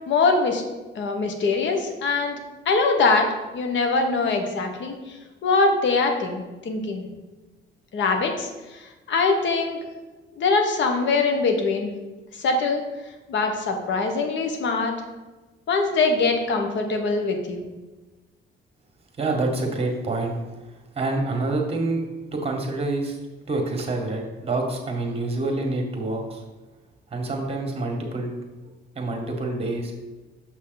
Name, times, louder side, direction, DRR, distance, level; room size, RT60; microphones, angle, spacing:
voice 1, 0.1-0.6 0.9-2.4 2.6-3.3 3.5-7.0 7.9-9.8 10.4-11.9 12.3-12.8 13.3-14.9 15.7-17.7, left 3 dB, 70° left, 4 dB, 1.3 m, -23 dB
voice 2, 19.2-20.4 21.0-22.0 22.3-23.1 23.5-26.4 27.1-28.3 29.0-29.9, right 2 dB, 30° right, 2 dB, 1.8 m, -27 dB
6.9 x 5.7 x 4.1 m, 1.2 s
cardioid pair, 90°, 20 cm